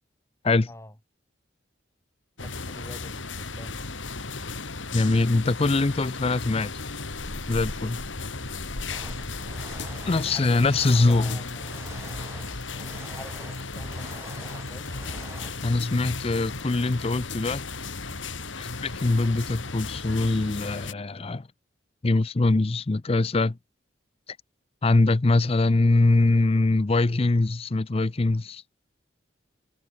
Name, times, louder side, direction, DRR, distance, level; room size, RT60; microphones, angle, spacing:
sound 1, 2.4-20.9, left 3 dB, 90° left, 2.8 m, -35 dB
voice 1, 2.4-3.9 10.2-10.7 11.1-11.8 13.1-15.1, left 1 dB, 15° left, 5.5 m, -45 dB
voice 2, 4.9-6.7 7.5-8.0 10.1-11.4 15.6-17.6 18.6-21.5 22.0-23.6 24.8-28.6, left 2 dB, 30° left, 0.5 m, -23 dB
sound 2, 8.7-17.6, left 3 dB, 65° left, 4.5 m, -43 dB
sound 3, 8.9-15.5, right 2 dB, 15° right, 5.2 m, -46 dB
head